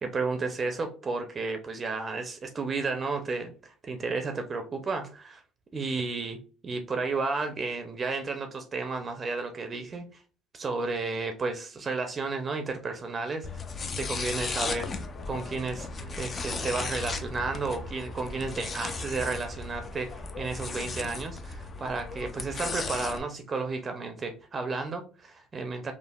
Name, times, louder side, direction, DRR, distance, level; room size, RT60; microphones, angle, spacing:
voice 1, 0.0-5.4 5.7-6.4 6.6-10.2 10.5-13.5 14.0-14.9 15.3-25.9, right 3 dB, 35° right, 6 dB, 0.5 m, -32 dB
sound 1, 13.4-23.2, left 4 dB, 35° left, 0.4 m, -36 dB
3.3 x 2.0 x 2.2 m, 0.38 s
supercardioid pair, 75°, 0 cm